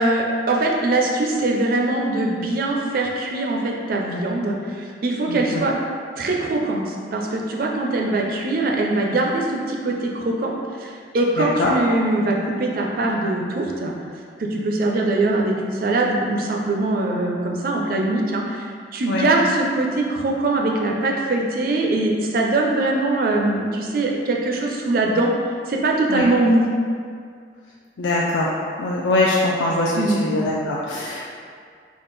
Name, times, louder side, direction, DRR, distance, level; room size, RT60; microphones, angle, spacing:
voice 1, 0.0-5.8 6.2-10.5 10.8-13.9 14.4-25.3 25.7-26.7 30.0-30.2, right 2 dB, 50° right, 0 dB, 0.4 m, -22 dB
voice 2, 5.3-5.7 11.4-11.7 19.1-19.3 26.1-26.3 28.0-28.5 28.8-31.3, left 2 dB, 85° left, -4 dB, 0.4 m, -22 dB
3.5 x 2.4 x 4.0 m, 2.1 s
head